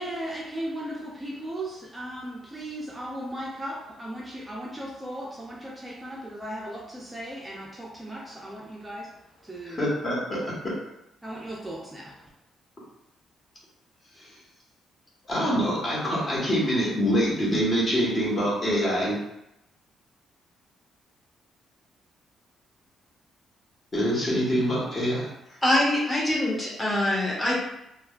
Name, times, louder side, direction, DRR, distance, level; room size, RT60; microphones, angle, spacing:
voice 1, 0.0-9.9 11.2-12.3, right 1 dB, 15° right, -4 dB, 0.5 m, -37 dB
voice 2, 9.7-10.7 15.3-19.2 23.9-25.3, equal, 35° left, -5 dB, 1.2 m, -25 dB
voice 3, 25.6-27.6, left 1 dB, 15° left, -5 dB, 1.1 m, -24 dB
3.2 x 2.2 x 2.4 m, 0.85 s
cardioid pair, 90°, 0 cm